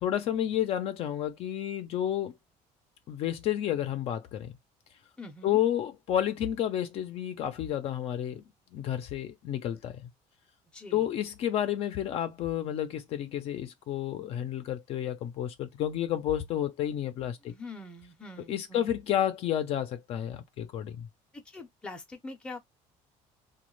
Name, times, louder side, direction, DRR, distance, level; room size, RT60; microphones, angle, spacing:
voice 1, 0.0-2.3 3.1-4.6 5.4-8.4 8.7-10.1 10.9-17.5 18.5-21.1, left 11 dB, 50° left, 0.5 m, -31 dB
voice 2, 5.2-5.6 10.7-11.1 17.4-18.9 21.3-22.6, left 2 dB, 5° left, 0.6 m, -44 dB
3.1 x 2.3 x 3.1 m
cardioid pair, 165°, 13 cm